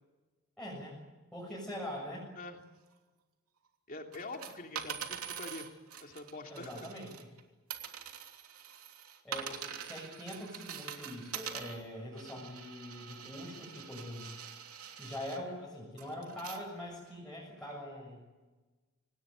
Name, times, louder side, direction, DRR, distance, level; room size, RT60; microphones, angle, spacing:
voice 1, 0.6-1.0 1.3-2.3 6.5-7.3 9.2-14.4 15.0-18.2, left 1 dB, 5° left, -5 dB, 6.8 m, -43 dB
voice 2, 3.9-5.7 6.0-6.9, left 2 dB, 40° left, 3 dB, 3.1 m, -45 dB
sound 1, 4.1-7.4 7.7-15.4 16.0-16.6 17.1-17.2, right 8 dB, 80° right, 3.0 m, -44 dB
27.0 x 19.0 x 9.4 m, 1.2 s
head